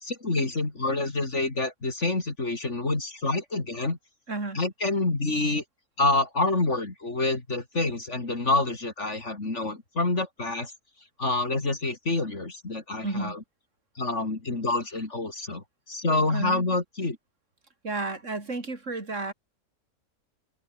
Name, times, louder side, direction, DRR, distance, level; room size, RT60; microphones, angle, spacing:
voice 1, 0.0-4.0 4.6-5.6 6.0-10.7 11.2-13.4 14.0-17.2, left 2 dB, 45° left, 3.6 m, -27 dB
voice 2, 4.3-4.6 13.0-13.4 16.3-16.7 17.8-19.3, right 3 dB, 50° right, 4.4 m, -32 dB
omnidirectional pair, 1.6 m